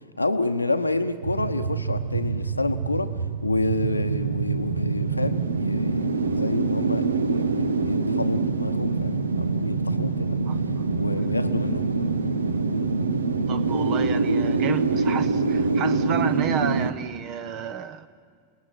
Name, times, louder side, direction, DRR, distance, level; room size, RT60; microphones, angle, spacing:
voice 1, 0.2-3.1 3.4-10.4 10.9-12.1, left 2 dB, 85° left, 8 dB, 1.0 m, -29 dB
sound 1, 1.2-16.9, right 4 dB, 75° right, 1.1 m, -25 dB
voice 2, 10.5-10.8 11.1-11.2 13.5-18.1, right 8 dB, 35° right, 14 dB, 1.0 m, -31 dB
28.0 x 19.5 x 9.6 m, 2.1 s
figure-of-eight pair, 90°, 0 cm